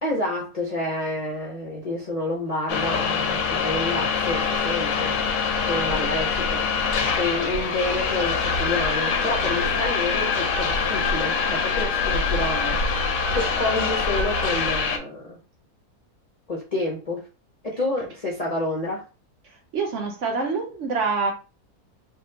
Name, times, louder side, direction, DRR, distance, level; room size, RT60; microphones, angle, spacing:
voice 1, 0.0-5.2 5.6-12.8 13.3-15.4 16.5-17.3 17.6-19.0, left 2 dB, 45° left, 0.5 m, -29 dB
sound 1, 2.7-15.0, left 5 dB, 65° left, 0.8 m, -24 dB
voice 2, 19.7-21.3, right 4 dB, 60° right, 0.8 m, -26 dB
3.5 x 2.3 x 2.8 m
omnidirectional pair, 1.6 m